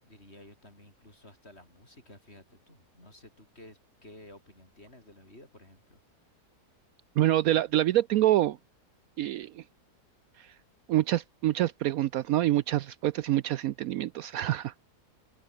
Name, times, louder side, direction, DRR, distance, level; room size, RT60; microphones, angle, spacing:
voice 1, 0.0-6.0, left 1 dB, 40° left, 7.8 m, -53 dB
voice 2, 7.2-8.6 9.2-9.6 10.4-10.5 10.9-14.7, right 14 dB, 70° right, 0.9 m, -26 dB
open air
omnidirectional pair, 1.7 m